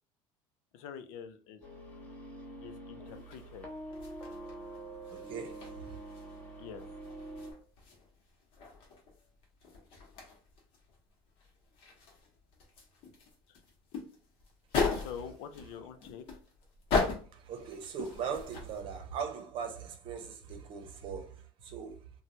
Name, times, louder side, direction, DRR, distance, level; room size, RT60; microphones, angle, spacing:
voice 1, 0.7-1.6 2.6-3.7 6.6-6.8 13.5-13.6 14.9-16.4, left 8 dB, 75° left, 0.5 m, -46 dB
sound 1, 1.6-7.5, right 1 dB, 15° left, 0.9 m, -45 dB
sound 2, 3.1-18.8, left 4 dB, 50° left, 1.0 m, -39 dB
voice 2, 5.1-6.0 14.9-15.1 17.3-22.1, right 6 dB, 50° right, 0.8 m, -40 dB
3.1 x 2.2 x 2.7 m
cardioid pair, 135°, 11 cm